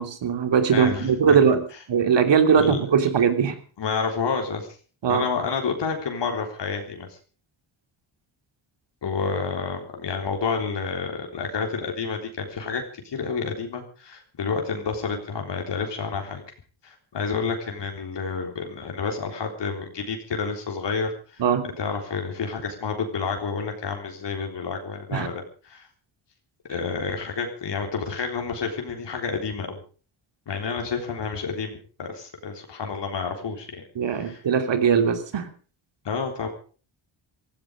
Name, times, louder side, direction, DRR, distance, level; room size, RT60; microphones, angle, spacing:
voice 1, 0.0-3.6 5.0-5.2 21.4-21.7 25.1-25.3 33.9-35.5, right 7 dB, 65° right, 8 dB, 3.0 m, -20 dB
voice 2, 0.7-1.4 2.6-2.8 3.8-4.7 5.1-7.2 9.0-16.4 16.8-25.9 26.7-29.8 30.5-33.8 34.1-34.4 36.0-36.5, left 5 dB, 60° left, 3 dB, 3.7 m, -29 dB
17.0 x 15.5 x 5.1 m, 0.39 s
cardioid pair, 110°, 48 cm